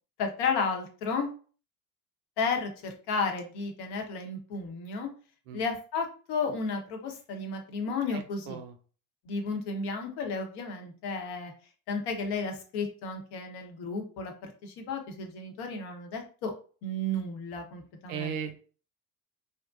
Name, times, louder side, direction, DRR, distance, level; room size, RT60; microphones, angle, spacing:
voice 1, 0.2-1.3 2.4-5.1 5.5-8.6 9.2-11.5 11.9-16.5 16.8-18.3, left 4 dB, 60° left, 3 dB, 0.8 m, -33 dB
voice 2, 8.1-8.8 18.1-18.5, right 7 dB, 75° right, 7 dB, 0.6 m, -37 dB
2.5 x 2.1 x 2.3 m, 0.40 s
hypercardioid pair, 65°, 45 cm